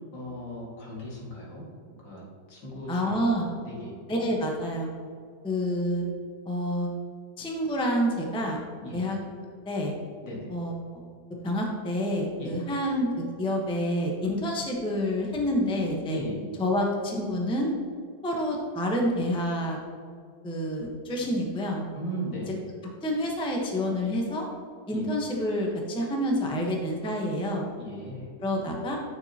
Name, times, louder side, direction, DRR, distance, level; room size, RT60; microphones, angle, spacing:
voice 1, 0.1-1.6 2.0-3.9 8.8-9.0 10.2-10.5 12.4-12.5 16.1-16.4 21.9-22.5 24.9-25.1 27.8-28.3, equal, 80° left, -4 dB, 2.6 m, -37 dB
voice 2, 2.9-3.5 4.1-4.9 5.4-6.0 6.5-6.9 7.4-8.6 8.9-9.2 9.7-9.9 10.5-11.0 11.4-16.2 16.6-17.7 18.2-19.8 20.4-21.8 23.0-24.5 24.9-27.7 28.4-29.0, equal, 5° left, 0 dB, 0.6 m, -28 dB
9.7 x 6.2 x 2.8 m, 2.2 s
omnidirectional pair, 1.9 m